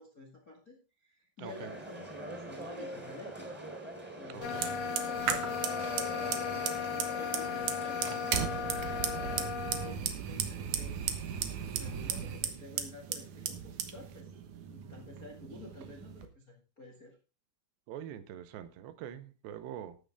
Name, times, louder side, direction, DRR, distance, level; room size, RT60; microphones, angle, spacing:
voice 1, 0.0-3.5 4.2-8.6 9.1-11.0 11.7-14.3 14.7-17.2, left 2 dB, 35° left, 1.4 m, -50 dB
sound 1, 1.4-9.4, right 2 dB, 5° right, 3.3 m, -44 dB
voice 2, 1.4-1.7 4.3-4.8 9.8-10.0 17.9-20.0, right 10 dB, 85° right, 3.2 m, -44 dB
sound 2, 4.4-10.0, left 8 dB, 75° left, 2.7 m, -36 dB
Fire, 4.4-16.3, right 8 dB, 65° right, 2.1 m, -37 dB
13.0 x 9.2 x 3.6 m
omnidirectional pair, 4.9 m